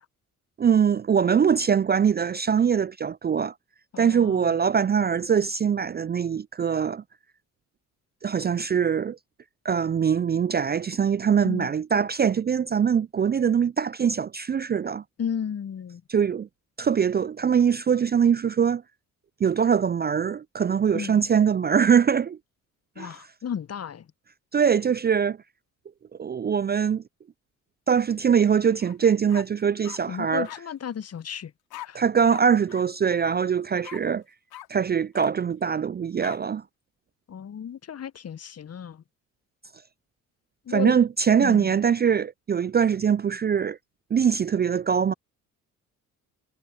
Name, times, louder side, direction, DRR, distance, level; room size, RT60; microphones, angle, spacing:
voice 1, 0.6-3.5 4.0-7.0 8.2-9.2 9.6-15.0 16.1-16.5 16.8-18.8 19.4-22.4 23.0-23.2 24.5-25.4 26.2-27.0 27.9-30.5 31.9-34.2 34.7-36.6 40.7-43.8 44.1-45.1, right 7 dB, 25° right, 0.5 m, -22 dB
voice 2, 3.9-4.5 11.4-11.7 15.2-16.0 20.9-21.2 23.0-24.0 30.1-31.5 31.9-32.0 37.3-39.0 40.7-41.0 41.4-41.7, left 8 dB, 35° left, 1.2 m, -33 dB
sound 1, 28.8-29.0 29.3-30.0 30.4-30.6 31.7-31.9 32.3-32.4 32.7-32.8 33.2-33.4 33.8-34.0 34.5-34.7 35.1-35.3 36.2-36.4, left 15 dB, 60° left, 2.7 m, -41 dB
figure-of-eight pair, 45°, 42 cm